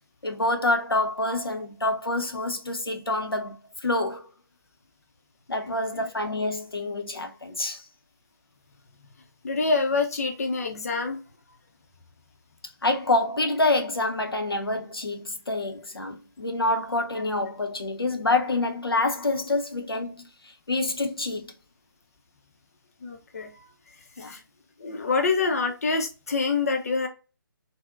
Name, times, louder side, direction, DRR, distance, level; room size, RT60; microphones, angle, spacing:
voice 1, 0.2-4.3 5.5-7.9 12.8-21.6 24.2-24.4, left 2 dB, 85° left, 0.6 m, -27 dB
voice 2, 5.7-6.1 9.4-11.2 23.0-23.7 24.2-24.4 24.8-27.1, left 4 dB, 40° left, 0.5 m, -26 dB
3.6 x 2.1 x 2.3 m
figure-of-eight pair, 145°, 12 cm